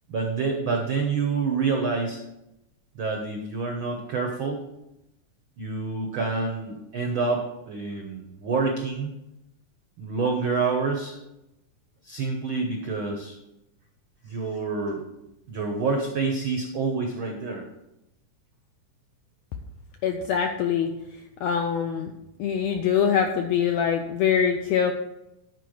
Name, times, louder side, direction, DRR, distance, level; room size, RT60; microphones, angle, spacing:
voice 1, 0.1-2.2 2.9-4.6 5.6-9.2 10.0-11.2 12.0-13.4 14.2-15.0 15.5-17.7, right 4 dB, 80° right, 2 dB, 1.1 m, -27 dB
voice 2, 20.0-20.9 21.4-22.1 22.4-24.9, left 7 dB, 80° left, 5 dB, 1.6 m, -23 dB
10.0 x 4.6 x 6.3 m, 0.90 s
omnidirectional pair, 3.7 m